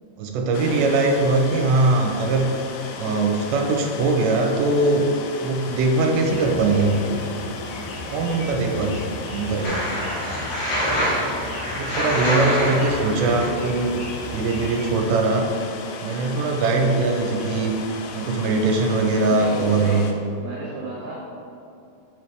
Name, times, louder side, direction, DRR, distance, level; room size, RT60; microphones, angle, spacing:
voice 1, 0.2-2.5 3.0-5.1 5.4-7.0 8.1-9.0 9.3-9.8 10.7-11.2 11.8-14.0 14.2-15.5 16.0-17.8 18.1-20.0, right 3 dB, 90° right, 2 dB, 2.9 m, -21 dB
sound 1, 0.5-20.1, left 4 dB, 90° left, 2.2 m, -37 dB
sound 2, 6.2-15.0, left 2 dB, 65° left, 3.2 m, -36 dB
sound 3, 9.6-13.5, equal, 50° left, 2.1 m, -25 dB
voice 2, 19.3-20.1 20.4-21.2, right 3 dB, 70° right, -6 dB, 2.2 m, -32 dB
7.3 x 7.1 x 3.3 m, 2.7 s
omnidirectional pair, 5.1 m